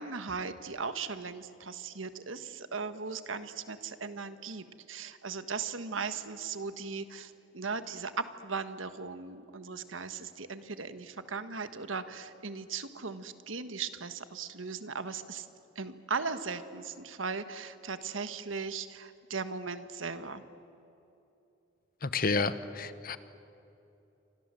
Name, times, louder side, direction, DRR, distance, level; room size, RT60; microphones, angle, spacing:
voice 1, 0.0-15.5 15.7-20.4, right 5 dB, 90° right, 11 dB, 1.5 m, -38 dB
voice 2, 22.0-23.2, left 4 dB, 50° left, 13 dB, 1.1 m, -30 dB
29.5 x 25.0 x 7.7 m, 2.9 s
head